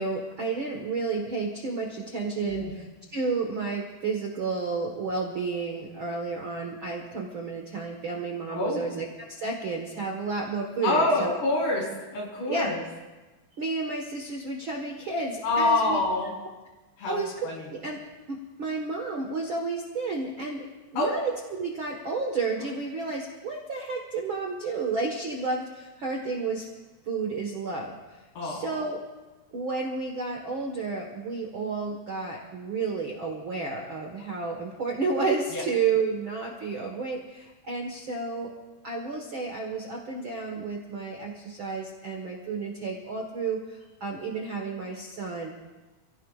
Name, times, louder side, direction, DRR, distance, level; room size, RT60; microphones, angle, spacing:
voice 1, 0.0-2.8 3.1-11.3 12.5-12.7 13.6-16.0 17.1-17.3 17.7-18.0 18.3-20.7 20.9-26.6 27.1-27.9 28.4-29.0 29.5-38.5 38.8-45.5, right 4 dB, 60° right, 0 dB, 1.3 m, -31 dB
voice 2, 2.4-2.7 8.5-8.8 10.8-11.9 12.1-12.8 15.4-16.3 17.0-17.2 17.4-17.7 21.0-21.1 28.4-28.8 35.5-35.6, left 2 dB, 75° left, -3 dB, 6.6 m, -26 dB
28.5 x 16.5 x 2.5 m, 1.2 s
omnidirectional pair, 4.7 m